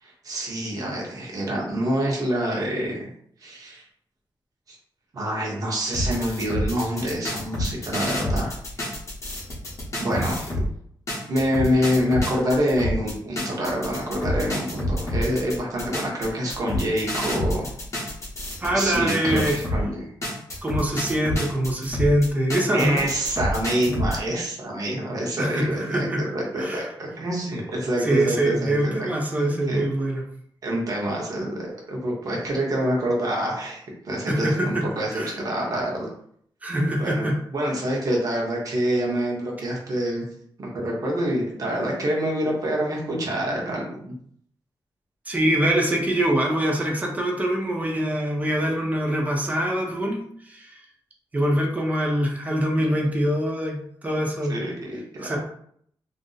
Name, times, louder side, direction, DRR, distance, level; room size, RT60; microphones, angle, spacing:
voice 1, 0.0-3.1 3.4-3.8 4.7-4.8 5.1-8.5 10.0-10.6 11.3-17.7 18.7-20.1 22.7-29.1 29.4-29.8 30.6-36.1 36.7-40.2 40.6-44.2 54.5-55.4, equal, 45° right, -2 dB, 0.9 m, -26 dB
sound 1, 5.9-10.7 11.1-19.8 20.2-24.2, left 1 dB, 35° left, 0.8 m, -28 dB
voice 2, 18.6-19.6 20.6-23.0 25.4-26.2 26.6-26.9 28.0-30.2 34.3-34.9 35.1-35.3 36.6-37.4 45.3-50.2 50.5-50.7 51.3-54.6 55.2-55.4, right 1 dB, 20° right, 0 dB, 0.6 m, -24 dB
2.5 x 2.0 x 3.8 m, 0.66 s
wide cardioid pair, 170°, 8 cm